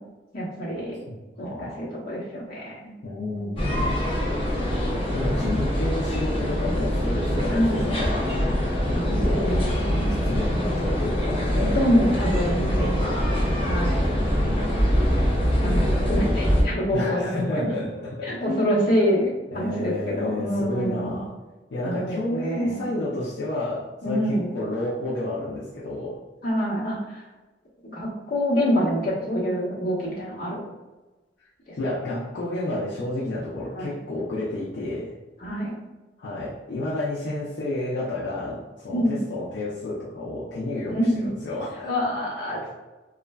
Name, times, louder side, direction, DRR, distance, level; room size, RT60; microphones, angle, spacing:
voice 1, 0.3-1.0 1.4-2.9 3.3-3.9 7.4-7.9 8.9-10.1 11.5-14.0 15.5-17.7 18.2-21.2 21.8-22.9 24.0-24.5 26.4-27.2 27.8-30.7 33.7-34.0 35.4-35.7 38.9-39.2 40.9-41.3 41.8-42.7, equal, 55° left, -6 dB, 0.9 m, -26 dB
voice 2, 1.1-1.8 3.0-3.8 5.1-8.4 8.8-9.6 10.1-11.6 16.9-18.9 19.5-21.3 21.7-26.2 31.8-35.1 36.2-42.0, left 1 dB, 80° left, -7 dB, 0.5 m, -31 dB
sound 1, 3.6-16.6, equal, 30° left, 0.7 m, -23 dB
3.1 x 2.3 x 2.2 m, 1.2 s
head